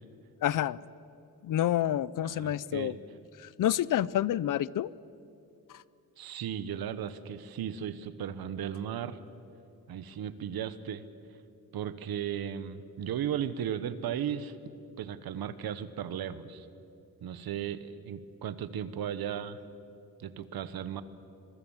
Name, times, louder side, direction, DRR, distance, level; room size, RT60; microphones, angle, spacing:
voice 1, 0.4-0.8 1.4-2.9 3.4-4.9 5.7-5.8, left 12 dB, 60° left, 21 dB, 0.5 m, -28 dB
voice 2, 2.2-3.0 6.2-9.2 9.9-11.0 11.7-14.6 15.0-16.7 17.2-19.6 20.2-21.0, right 9 dB, 80° right, 14 dB, 1.2 m, -36 dB
26.5 x 22.0 x 7.2 m, 2.7 s
wide cardioid pair, 155°, 36 cm